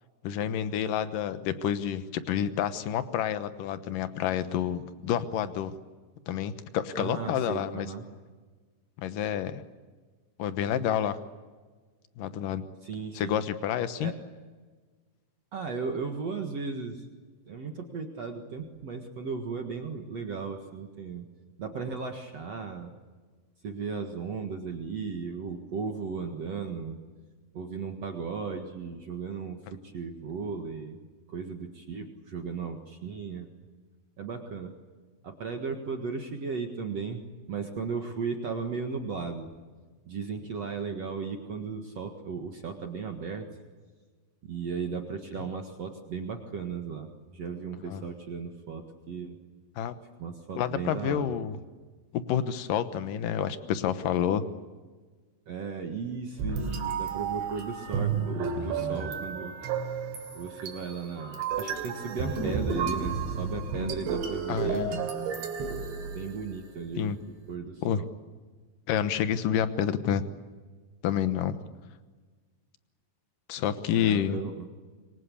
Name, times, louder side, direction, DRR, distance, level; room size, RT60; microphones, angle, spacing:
voice 1, 0.2-5.8 6.3-7.9 9.0-9.6 10.4-11.2 12.2-12.6 13.1-14.1 47.9-48.0 49.8-49.9 50.6-51.6 52.1-54.4 58.6-58.7 64.5-64.9 67.0-67.2 67.8-68.0 68.9-70.2 71.0-71.6 73.5-74.4, left 9 dB, 70° left, 11 dB, 2.1 m, -29 dB
voice 2, 7.0-8.1 12.8-13.4 14.0-14.2 15.5-17.1 17.5-21.3 21.6-22.9 23.6-27.0 27.5-31.0 31.3-33.5 34.2-34.7 35.2-37.2 37.5-39.5 40.1-43.5 44.4-49.4 50.2-51.4 55.5-59.6 60.3-65.0 66.1-67.1 67.5-68.1 73.9-74.7, right 5 dB, 55° right, 4 dB, 1.9 m, -36 dB
sound 1, 56.4-66.7, right 5 dB, 75° right, 5.0 m, -32 dB
26.5 x 24.0 x 8.5 m, 1.4 s
omnidirectional pair, 5.3 m